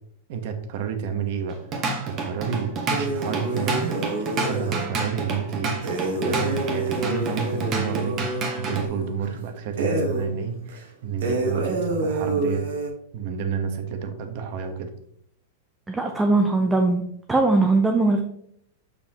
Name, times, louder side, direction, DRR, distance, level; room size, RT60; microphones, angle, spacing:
voice 1, 0.3-1.6 2.0-4.0 4.4-5.8 6.2-12.6 13.1-14.9, right 7 dB, 50° right, 7 dB, 1.1 m, -30 dB
Drum kit / Drum, 1.5-8.9, right 3 dB, 30° right, 1.2 m, -29 dB
sound 1, 2.9-4.9 5.8-9.4 9.8-10.3 10.7-10.8 11.2-12.9, right 2 dB, 85° right, 1.9 m, -28 dB
voice 2, 15.9-17.0 17.3-18.2, right 3 dB, 10° right, 3 dB, 0.6 m, -20 dB
6.8 x 5.6 x 3.0 m, 0.69 s
supercardioid pair, 155°, 0 cm